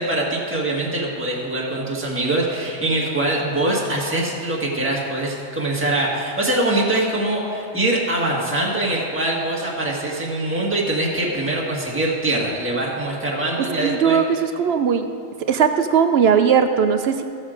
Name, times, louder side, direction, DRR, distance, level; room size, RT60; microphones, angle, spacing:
voice 1, 0.0-14.2, right 1 dB, 10° right, -4 dB, 1.6 m, -23 dB
voice 2, 13.6-15.1 15.4-17.2, right 7 dB, 65° right, 8 dB, 0.7 m, -18 dB
15.0 x 6.4 x 5.0 m, 2.4 s
omnidirectional pair, 1.4 m